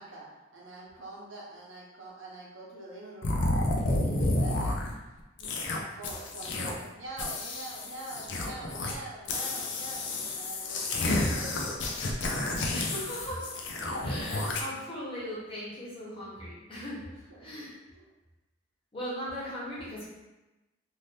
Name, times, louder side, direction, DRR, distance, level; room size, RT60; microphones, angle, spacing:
voice 1, 0.0-4.9 5.4-5.5 5.8-11.8 12.3-12.4 17.4-17.5 17.9-18.0, right 2 dB, 90° right, -4 dB, 0.9 m, -45 dB
sound 1, 3.2-4.9 5.4-5.8 6.0-6.9 7.2-9.0 9.3-14.6, left 2 dB, 65° left, 0.5 m, -30 dB
voice 2, 12.7-13.5 13.9-17.0 17.4-17.7 18.9-20.1, equal, 30° left, -8 dB, 1.1 m, -38 dB
2.7 x 2.6 x 3.3 m, 1.1 s
head